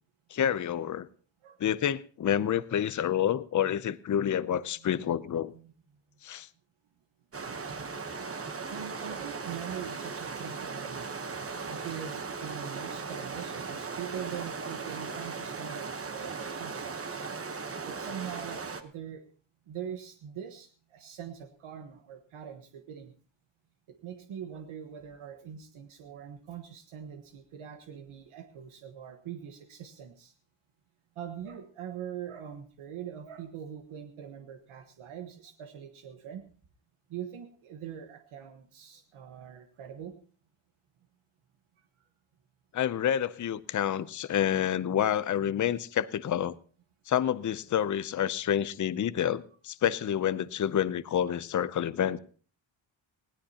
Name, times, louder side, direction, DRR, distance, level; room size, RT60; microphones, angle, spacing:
voice 1, 0.3-1.1 1.6-5.5 6.2-6.5 42.7-46.5 47.1-52.2, left 10 dB, 40° left, 16 dB, 0.6 m, -28 dB
sound 1, 7.3-18.8, right 4 dB, 30° right, 1.0 m, -38 dB
voice 2, 8.7-11.1 11.7-17.3 17.8-19.2 19.7-23.1 24.0-30.3 31.1-36.4 37.1-40.2, right 9 dB, 85° right, 6 dB, 1.4 m, -42 dB
20.0 x 16.5 x 2.9 m, 0.41 s
wide cardioid pair, 135°, 48 cm